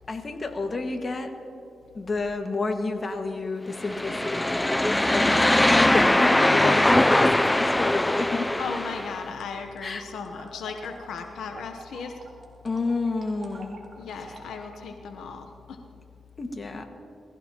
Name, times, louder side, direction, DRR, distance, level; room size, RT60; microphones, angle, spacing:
voice 1, 0.1-1.3 1.9-8.5 9.8-10.0 12.6-13.8 16.4-16.9, left 3 dB, 40° left, 4 dB, 1.6 m, -30 dB
sound 1, 3.8-9.2, left 1 dB, 15° left, 0.4 m, -21 dB
voice 2, 5.1-5.9 8.6-12.2 14.0-15.8, left 5 dB, 85° left, 5 dB, 0.9 m, -37 dB
sound 2, 7.8-14.8, right 3 dB, 50° right, 3.3 m, -48 dB
21.5 x 16.0 x 2.9 m, 2.8 s
cardioid pair, 70°, 0 cm